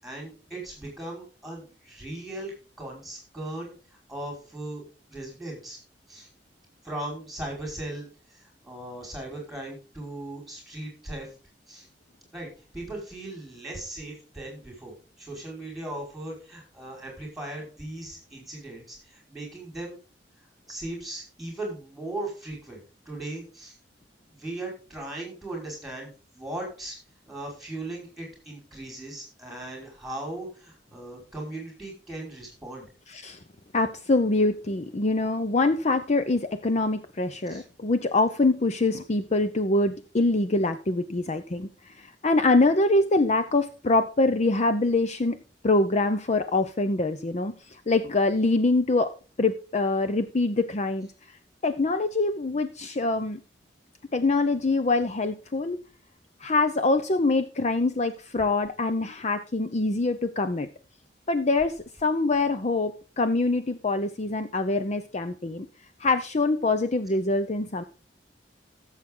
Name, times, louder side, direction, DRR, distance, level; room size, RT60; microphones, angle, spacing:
voice 1, 0.0-2.5 2.8-3.7 4.1-4.8 5.1-5.8 6.1-6.3 6.8-8.1 8.3-11.3 11.7-11.9 12.3-12.5 12.7-20.0 20.7-22.8 23.1-23.7 24.3-27.0 27.3-32.9 37.5-37.6, right 1 dB, ahead, 0 dB, 5.3 m, -38 dB
voice 2, 33.7-41.7 42.0-45.4 45.6-49.1 49.4-51.1 51.6-53.4 54.1-55.8 56.4-60.7 61.3-61.7 62.0-65.7 66.0-67.8, left 2 dB, 40° left, 10 dB, 0.7 m, -24 dB
15.0 x 7.4 x 3.8 m, 0.36 s
head